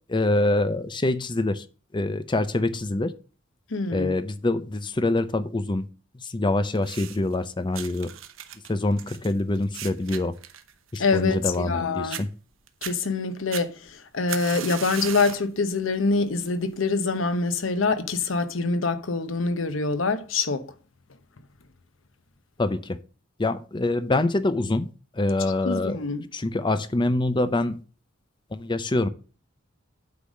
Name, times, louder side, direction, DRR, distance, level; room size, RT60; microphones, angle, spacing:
voice 1, 0.1-1.6 1.9-3.1 3.9-5.8 6.1-8.1 8.7-10.3 10.9-12.3 22.6-23.0 23.4-24.9 25.1-26.0 26.3-27.8 28.5-29.1, left 2 dB, 25° left, 0.6 m, -25 dB
voice 2, 3.7-4.1 11.0-12.2 12.8-20.7 25.6-26.3, left 3 dB, 80° left, 0.9 m, -25 dB
sound 1, 6.8-7.4 7.7-11.8 12.1-12.2 12.7-13.0 13.5-15.5 15.9-16.3 17.1-17.2, right 10 dB, 90° right, 0.9 m, -37 dB
8.5 x 4.1 x 6.2 m
head